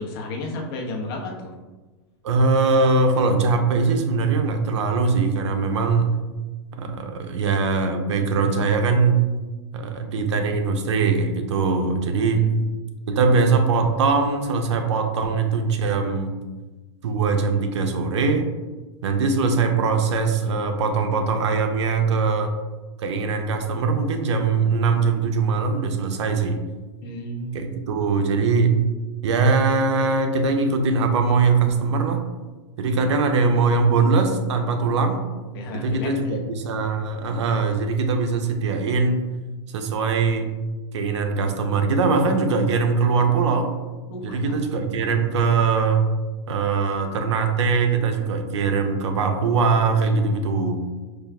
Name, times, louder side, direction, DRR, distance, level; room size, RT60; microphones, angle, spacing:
voice 1, 0.0-1.5 12.3-12.5 27.0-27.7 35.5-36.4 44.1-44.4, left 2 dB, 55° left, 0 dB, 0.8 m, -32 dB
voice 2, 2.2-6.2 6.8-9.3 9.7-12.5 13.1-16.3 17.0-18.5 19.0-22.6 23.0-26.6 27.5-28.8 29.2-32.2 32.8-35.2 35.7-39.2 39.7-40.6 40.9-43.7 44.2-46.1 46.5-50.9, right 4 dB, 80° right, 5 dB, 0.5 m, -21 dB
4.8 x 2.3 x 2.2 m, 1.2 s
supercardioid pair, 145°, 15 cm